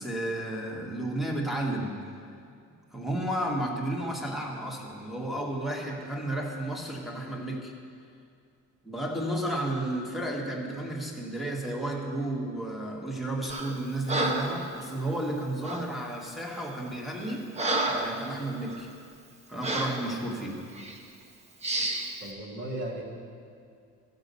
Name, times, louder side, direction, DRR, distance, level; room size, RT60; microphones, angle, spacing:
voice 1, 0.0-2.0 2.9-7.7 8.8-17.5 17.9-18.9 19.5-20.6, right 1 dB, ahead, -1 dB, 1.3 m, -32 dB
Breathing, 13.5-13.8 14.1-14.6 15.6-15.9 16.6-16.7 17.2-18.2 18.7-18.8 19.6-20.0 20.7-21.0 21.6-22.1, right 2 dB, 20° right, 0.8 m, -30 dB
voice 2, 22.2-23.0, right 1 dB, 55° right, -1 dB, 2.0 m, -36 dB
15.5 x 5.2 x 6.8 m, 2.3 s
cardioid pair, 160°, 31 cm